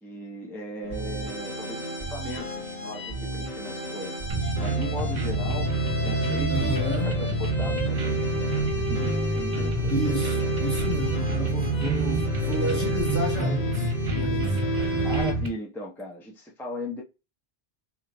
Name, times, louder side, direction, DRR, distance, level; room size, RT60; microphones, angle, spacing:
voice 1, 0.0-4.2 4.6-5.7 6.0-10.0 14.9-17.0, left 1 dB, ahead, 0.7 m, -38 dB
sound 1, 0.8-15.3, equal, 45° left, 1.4 m, -32 dB
sound 2, 4.3-15.5, right 2 dB, 65° right, 1.1 m, -27 dB
voice 2, 6.5-7.1 9.9-13.9 14.1-14.6, right 1 dB, 30° left, 1.0 m, -31 dB
3.2 x 3.0 x 3.8 m
omnidirectional pair, 1.0 m